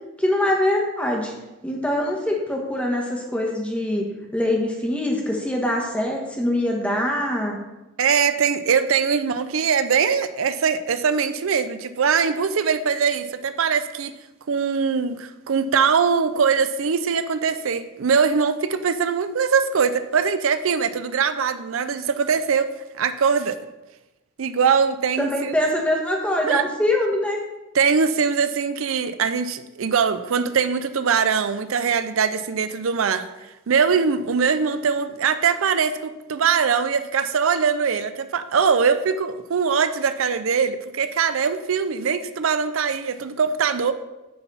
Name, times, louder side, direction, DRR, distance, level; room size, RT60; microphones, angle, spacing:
voice 1, 0.2-1.3 1.6-4.1 4.3-7.6 25.2-27.4, left 1 dB, 5° left, 0 dB, 1.3 m, -23 dB
voice 2, 8.0-14.1 14.5-22.7 23.0-23.6 24.4-25.5 26.5-26.6 27.7-33.3 33.7-43.9, right 6 dB, 80° right, 11 dB, 0.5 m, -22 dB
9.5 x 4.0 x 6.8 m, 1.0 s
head